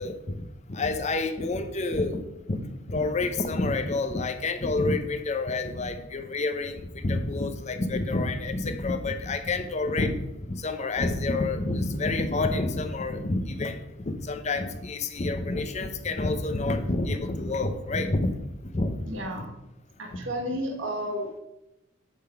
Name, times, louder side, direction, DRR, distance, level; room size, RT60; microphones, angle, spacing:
voice 1, 0.0-2.2 2.5-10.1 10.5-18.3 18.7-19.1 19.4-19.5, left 2 dB, 35° left, 7 dB, 0.6 m, -28 dB
voice 2, 19.1-19.5 20.0-21.4, equal, 65° right, 0 dB, 1.3 m, -32 dB
8.3 x 3.8 x 5.7 m, 0.90 s
head